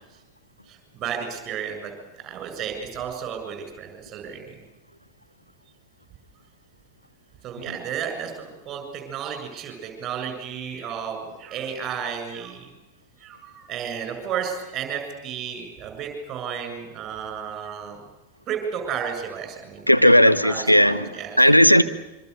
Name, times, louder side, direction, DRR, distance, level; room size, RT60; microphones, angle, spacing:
voice 1, 0.7-1.9 2.2-4.6 7.4-12.7 13.2-18.0 18.5-20.1 20.4-21.4, right 7 dB, 30° right, 7.2 m, -33 dB
voice 2, 19.9-21.1 21.4-21.8, equal, 90° left, 1.0 m, -15 dB
25.5 x 24.5 x 6.8 m
figure-of-eight pair, 90°, 0 cm